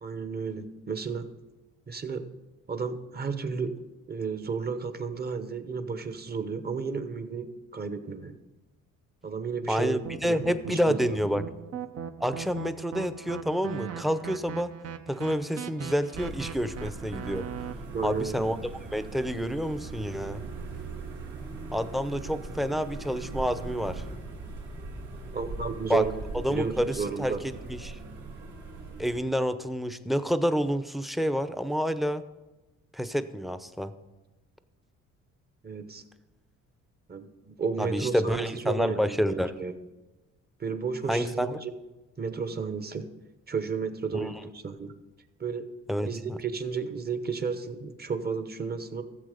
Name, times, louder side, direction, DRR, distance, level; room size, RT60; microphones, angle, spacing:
voice 1, 0.0-1.3 1.9-2.2 2.7-3.8 4.1-8.4 9.2-11.4 17.9-18.6 25.3-27.4 35.6-36.0 37.1-39.7 40.6-41.7 42.2-43.1 43.5-44.9 45.4-45.7 46.0-49.0, right 5 dB, 30° right, 10 dB, 1.1 m, -33 dB
voice 2, 9.7-11.4 12.2-14.7 15.1-17.4 18.0-18.6 18.9-20.4 21.7-24.0 25.9-26.0 26.4-27.3 27.7-28.0 29.0-32.2 32.9-33.9 37.8-39.5 41.1-41.6 44.1-44.3 45.9-46.4, equal, ahead, 11 dB, 0.7 m, -28 dB
sound 1, 10.0-17.7, right 8 dB, 55° right, 0.8 m, -39 dB
sound 2, 16.1-29.2, right 3 dB, 90° right, 2.7 m, -40 dB
14.5 x 7.4 x 5.0 m, 1.1 s
cardioid pair, 90°, 30 cm